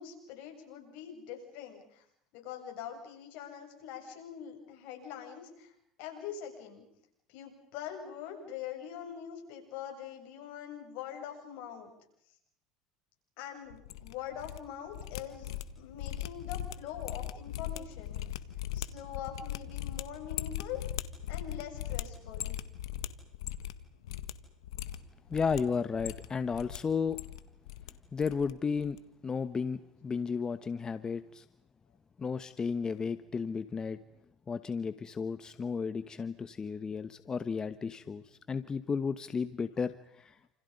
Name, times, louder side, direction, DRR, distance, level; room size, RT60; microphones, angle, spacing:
voice 1, 0.0-2.0 2.3-5.7 6.0-6.8 7.3-11.9 13.4-18.2 18.7-20.8 21.3-22.6, left 9 dB, 70° left, 3 dB, 7.9 m, -43 dB
sound 1, 13.7-14.6 14.9-23.8 24.0-24.3 24.6-25.6 25.9-26.8 27.0-27.9 28.2-28.5 28.8-29.0, left 12 dB, 90° left, 1.6 m, -39 dB
voice 2, 25.3-27.2 28.1-29.0 29.2-31.4 32.2-34.0 34.5-40.5, left 5 dB, 25° left, 12 dB, 1.2 m, -33 dB
29.5 x 28.0 x 5.4 m, 0.71 s
supercardioid pair, 95°, 3 cm